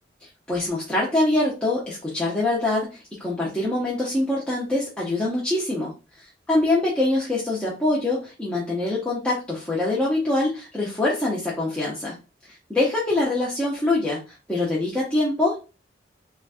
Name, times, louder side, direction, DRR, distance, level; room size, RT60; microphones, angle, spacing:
voice 1, 0.2-12.1 12.5-15.6, left 2 dB, 5° left, -6 dB, 0.6 m, -24 dB
3.9 x 2.3 x 2.4 m, 0.32 s
head